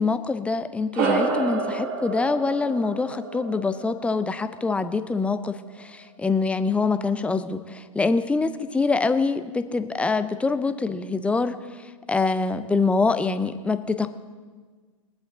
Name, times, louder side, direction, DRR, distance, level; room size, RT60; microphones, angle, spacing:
voice 1, 0.0-11.6 12.1-14.1, left 4 dB, 5° left, 10 dB, 0.6 m, -25 dB
sound 1, 0.9-5.7, right 4 dB, 40° right, 1.9 m, -30 dB
22.0 x 8.1 x 4.0 m, 1.5 s
figure-of-eight pair, 110°, 17 cm